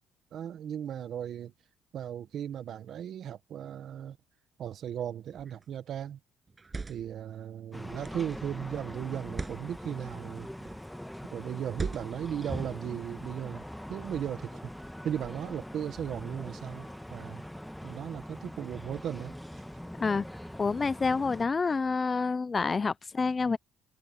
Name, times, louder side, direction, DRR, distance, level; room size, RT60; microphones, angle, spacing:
voice 1, 0.3-1.5 1.9-4.2 4.6-6.2 6.9-10.5 11.3-13.6 13.9-14.6 15.0-17.4 17.8-19.3, right 9 dB, 65° right, 1.6 m, -36 dB
sound 1, 5.3-5.6 6.5-7.2 8.0-8.4 9.2-9.6 10.5-10.9 11.7-12.3, right 4 dB, 30° right, 7.5 m, -39 dB
sound 2, 7.7-21.5, equal, 5° left, 1.5 m, -42 dB
voice 2, 20.6-23.6, left 4 dB, 30° left, 0.8 m, -28 dB
cardioid pair, 80°, 0 cm